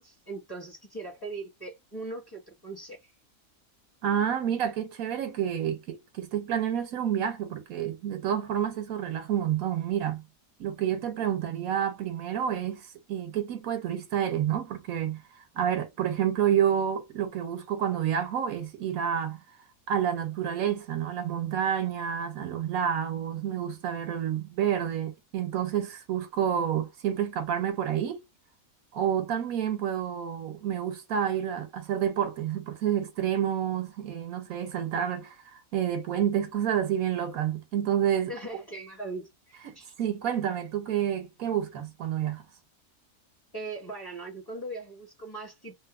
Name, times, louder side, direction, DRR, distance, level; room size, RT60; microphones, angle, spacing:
voice 1, 0.0-3.1 38.3-39.9 43.5-45.7, right 2 dB, 15° left, 1.2 m, -40 dB
voice 2, 4.0-10.2 10.6-12.8 13.1-15.2 15.5-19.4 19.9-28.2 28.9-38.3 39.6-42.4, right 9 dB, 80° right, 1.2 m, -29 dB
3.1 x 2.2 x 2.3 m
omnidirectional pair, 1.5 m